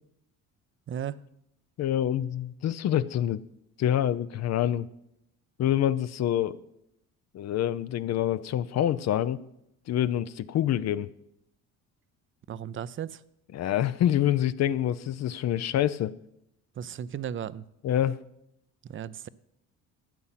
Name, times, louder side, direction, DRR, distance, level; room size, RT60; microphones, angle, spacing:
voice 1, 0.9-1.2 12.5-13.2 16.8-17.6 18.8-19.3, right 9 dB, 40° right, 0.6 m, -35 dB
voice 2, 1.8-3.4 3.8-4.9 5.6-6.6 7.3-9.4 9.9-11.1 13.5-16.1 17.8-18.2, left 11 dB, 55° left, 0.6 m, -26 dB
12.5 x 8.6 x 5.8 m
cardioid pair, 85°, 33 cm